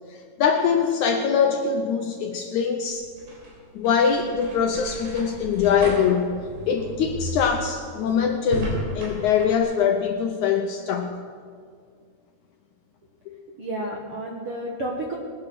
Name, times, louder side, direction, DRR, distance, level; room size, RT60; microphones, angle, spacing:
voice 1, 0.4-3.1 3.7-6.4 6.7-11.2 13.3-13.4, left 7 dB, 85° left, 4 dB, 1.7 m, -23 dB
sound 1, 2.9-9.6, right 1 dB, 85° right, 5.5 m, -34 dB
voice 2, 13.5-15.2, right 1 dB, 60° right, -1 dB, 1.5 m, -31 dB
20.0 x 9.8 x 6.2 m, 2.1 s
omnidirectional pair, 4.4 m